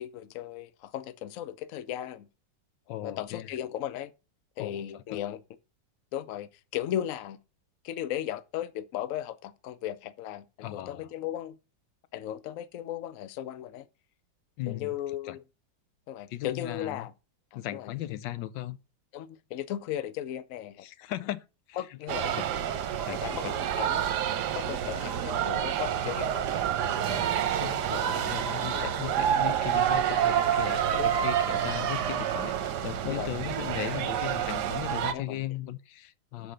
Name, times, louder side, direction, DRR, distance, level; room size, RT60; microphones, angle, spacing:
voice 1, 0.0-2.3 3.0-4.1 4.6-5.4 6.1-7.4 7.8-11.6 12.1-13.9 14.7-15.4 16.1-17.1 17.5-17.9 19.1-20.8 21.8-22.3 23.2-24.0 24.5-27.1 28.7-29.0 31.0-31.3 33.1-33.3 35.1-35.4 36.4-36.5, left 11 dB, 65° left, 0.9 m, -36 dB
voice 2, 2.9-3.5 4.6-5.2 10.6-11.1 14.6-14.9 15.2-15.4 16.3-17.1 17.5-18.8 20.8-22.0 22.3-22.4 23.0-23.6 24.8-25.1 26.1-26.3 27.0-36.5, left 13 dB, 80° left, 1.3 m, -38 dB
sound 1, 22.1-35.1, right 10 dB, 70° right, 1.3 m, -28 dB
6.5 x 5.1 x 5.6 m
omnidirectional pair, 2.0 m